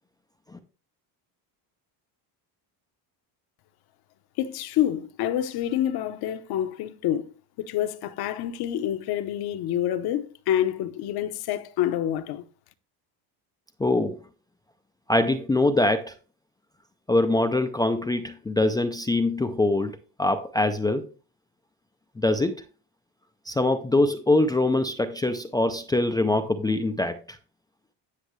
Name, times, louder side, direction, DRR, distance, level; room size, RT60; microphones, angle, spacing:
voice 1, 4.4-7.3 7.6-12.4, left 11 dB, 55° left, 0.9 m, -27 dB
voice 2, 13.8-14.2 15.1-16.1 17.1-21.1 22.2-22.6 23.5-27.4, left 2 dB, 10° left, 0.3 m, -23 dB
10.0 x 6.4 x 3.1 m
cardioid pair, 160°, 44 cm